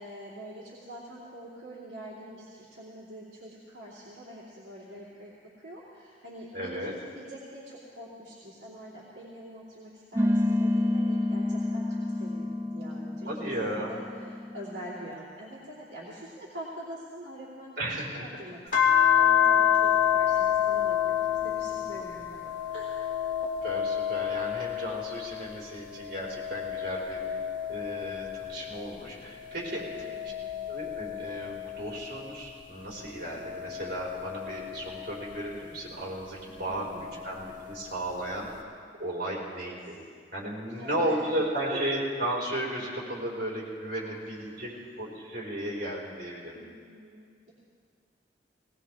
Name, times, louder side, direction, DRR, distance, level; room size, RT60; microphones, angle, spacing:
voice 1, 0.0-5.3 5.6-17.9 18.1-23.0 29.9-30.5 36.7-37.1 39.3-39.6 39.9-40.0 40.7-41.2 41.7-41.8 43.9-44.7 46.5-47.5, equal, 75° right, -9 dB, 2.9 m, -45 dB
voice 2, 6.5-6.9 13.2-14.0 17.8-18.3 23.6-27.4 27.7-30.3 30.7-38.7 39.0-40.0 40.3-44.7 45.0-46.6, right 1 dB, 60° right, -5 dB, 4.7 m, -34 dB
sound 1, 10.2-15.1, left 1 dB, 15° right, 0.5 m, -29 dB
sound 2, 18.7-25.4 25.9-28.8 29.4-32.2 32.9-35.4 36.7-37.8, left 10 dB, 50° left, 2.0 m, -29 dB
19.5 x 19.5 x 3.7 m, 2.1 s
head